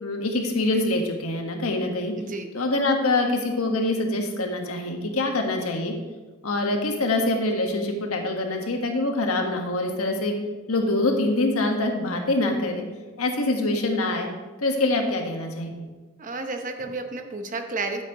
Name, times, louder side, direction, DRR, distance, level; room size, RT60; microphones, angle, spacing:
voice 1, 0.0-2.1 2.5-5.9 6.4-10.3 10.7-12.8 13.2-14.3 14.6-15.7, left 2 dB, 80° left, 3 dB, 1.5 m, -25 dB
voice 2, 2.2-2.5 16.2-18.0, right 3 dB, 35° right, 6 dB, 0.9 m, -31 dB
12.0 x 9.2 x 3.0 m, 1.2 s
head